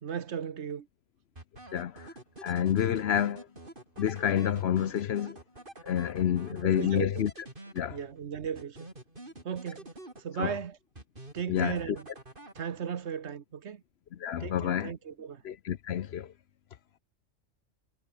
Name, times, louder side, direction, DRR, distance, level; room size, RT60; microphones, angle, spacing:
voice 1, 0.0-0.9 6.6-7.3 7.9-8.9 9.4-9.9 10.2-10.8 11.3-12.1 12.5-13.8 14.4-15.4, right 7 dB, 65° right, 1.3 m, -36 dB
sound 1, 1.4-8.2 8.5-10.6 11.0-13.0, right 1 dB, 45° right, 5.1 m, -48 dB
voice 2, 1.7-2.1 2.4-3.5 4.0-5.4 5.8-7.3 7.7-8.0 10.4-10.5 11.5-12.0 14.1-14.9 15.4-16.3, left 10 dB, 60° left, 0.9 m, -29 dB
omnidirectional pair, 1.3 m